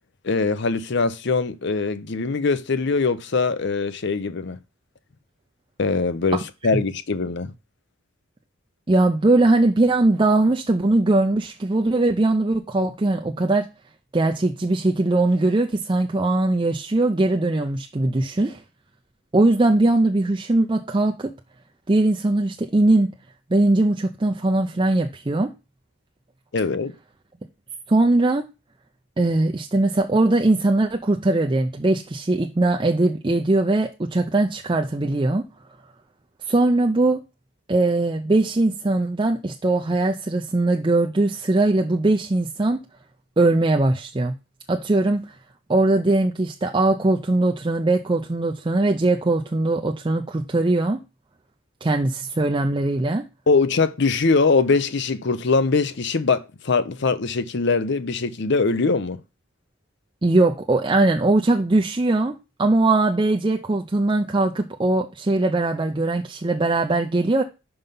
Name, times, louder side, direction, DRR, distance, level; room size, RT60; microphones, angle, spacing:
voice 1, 0.2-4.6 5.8-7.5 26.5-26.9 53.5-59.2, left 4 dB, 55° left, 0.7 m, -22 dB
voice 2, 8.9-13.7 14.1-18.6 19.3-21.3 21.9-23.1 23.5-25.5 27.9-28.4 29.2-35.4 36.4-37.2 37.7-42.8 43.4-44.4 44.7-45.4 45.7-51.0 51.8-53.3 60.2-67.4, right 2 dB, 25° right, 0.5 m, -20 dB
5.6 x 5.6 x 5.4 m
head